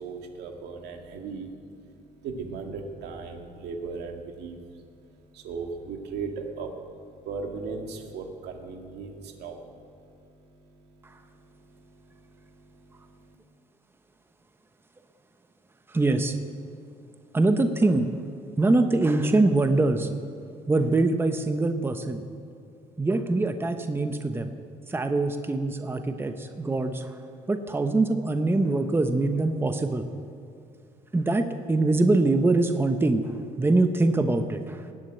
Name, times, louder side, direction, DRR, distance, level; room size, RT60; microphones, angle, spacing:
voice 1, 0.0-13.4, right 4 dB, 80° right, 3 dB, 2.0 m, -39 dB
voice 2, 15.9-16.4 17.3-18.1 18.6-20.1 20.7-22.2 23.0-24.5 24.9-27.1 27.5-30.1 31.1-34.8, right 2 dB, 15° right, 7 dB, 0.9 m, -23 dB
19.0 x 7.5 x 9.1 m, 2.3 s
cardioid pair, 110°, 17 cm